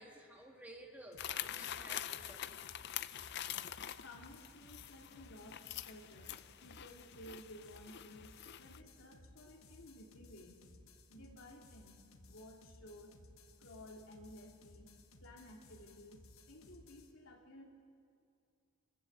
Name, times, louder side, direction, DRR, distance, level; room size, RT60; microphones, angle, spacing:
voice 1, 0.0-2.5, right 1 dB, 10° right, 0 dB, 2.2 m, -54 dB
sound 1, 1.1-17.1, left 2 dB, 90° left, 1.6 m, -60 dB
sound 2, 1.2-8.8, left 11 dB, 55° left, 0.5 m, -45 dB
voice 2, 4.0-6.4 6.6-10.6 11.1-12.0 12.3-13.1 13.6-14.9 15.2-17.6, left 1 dB, 70° left, 0 dB, 2.8 m, -55 dB
29.5 x 14.5 x 8.0 m, 2.4 s
head